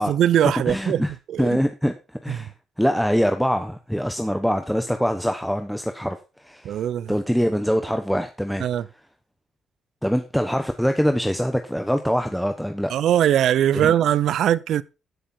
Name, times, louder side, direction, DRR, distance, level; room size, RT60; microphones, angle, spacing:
voice 1, 0.0-1.6 2.3-2.5 6.6-7.2 8.6-8.9 12.9-14.8, right 10 dB, 70° right, 0.6 m, -21 dB
voice 2, 0.7-1.1 1.4-1.9 2.2-2.5 2.8-6.8 7.1-8.6 10.0-12.9 13.7-13.9, equal, ahead, 1.1 m, -23 dB
14.0 x 6.7 x 4.4 m
cardioid pair, 90°, 0 cm